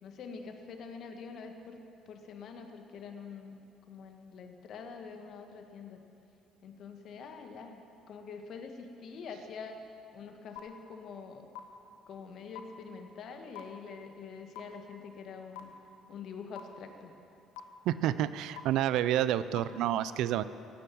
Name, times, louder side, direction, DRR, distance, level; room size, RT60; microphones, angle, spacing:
voice 1, 0.0-1.8 2.1-3.6 3.9-6.0 6.6-7.8 8.1-9.8 10.1-11.5 12.1-15.7 16.1-17.1, left 5 dB, 60° left, 5 dB, 1.8 m, -45 dB
sound 1, 10.6-10.7 11.5-11.6 12.5-12.6 13.6-13.7 14.6-14.7 15.6-15.7 16.6-16.7 17.6-17.7 18.6-18.7 19.6-19.7, left 14 dB, 85° left, 1.3 m, -41 dB
voice 2, 17.9-20.4, right 12 dB, 70° right, 15 dB, 0.5 m, -29 dB
17.0 x 10.5 x 7.6 m, 2.7 s
hypercardioid pair, 65°, 0 cm